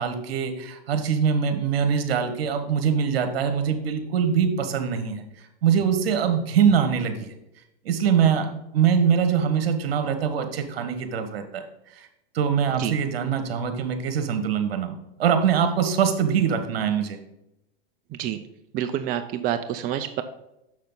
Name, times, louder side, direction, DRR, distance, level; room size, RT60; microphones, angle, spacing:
voice 1, 0.0-5.2 5.6-7.3 7.8-8.5 8.7-11.6 12.0-12.1 12.3-17.2, right 7 dB, 75° right, 8 dB, 1.4 m, -23 dB
voice 2, 18.7-20.2, right 10 dB, 30° right, 8 dB, 0.5 m, -27 dB
6.6 x 6.5 x 3.9 m, 0.87 s
hypercardioid pair, 120°, 30 cm